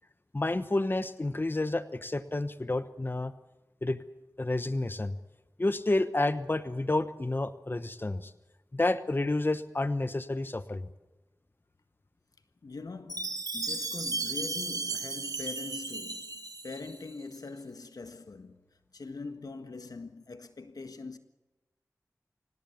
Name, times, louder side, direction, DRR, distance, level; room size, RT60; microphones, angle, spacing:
voice 1, 0.3-3.3 3.8-4.0 4.4-5.2 5.6-8.3 8.7-10.9, left 2 dB, 35° left, 1.1 m, -30 dB
voice 2, 12.6-18.6 18.9-21.2, left 3 dB, 80° left, 1.6 m, -43 dB
Chime, 13.1-17.2, right 3 dB, 75° right, 2.3 m, -35 dB
26.0 x 18.0 x 7.2 m
wide cardioid pair, 50°, 6 cm